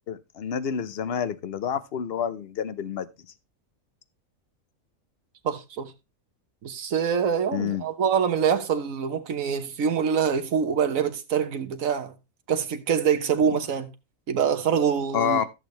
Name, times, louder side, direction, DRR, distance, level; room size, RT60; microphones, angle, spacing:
voice 1, 0.1-3.1 7.5-7.8 13.5-13.6 15.1-15.5, left 8 dB, 50° left, 1.0 m, -28 dB
voice 2, 5.4-5.9 6.6-12.1 12.5-13.9 14.3-15.4, right 7 dB, 70° right, 1.5 m, -25 dB
14.5 x 6.8 x 3.2 m
omnidirectional pair, 1.5 m